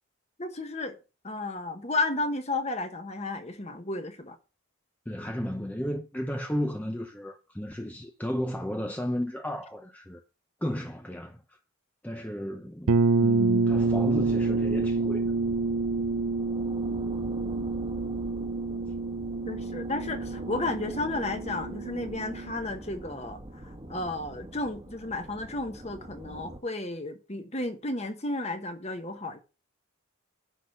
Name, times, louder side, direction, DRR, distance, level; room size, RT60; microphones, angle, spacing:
voice 1, 0.4-1.0 1.2-4.4 19.4-29.4, left 2 dB, 30° left, 1.2 m, -33 dB
voice 2, 5.1-10.2 10.6-11.4 12.0-15.3, equal, 5° left, 0.7 m, -33 dB
sound 1, 12.9-22.5, right 3 dB, 85° right, 0.5 m, -28 dB
sound 2, 13.7-26.6, right 1 dB, 25° right, 1.3 m, -42 dB
10.0 x 4.0 x 6.6 m
head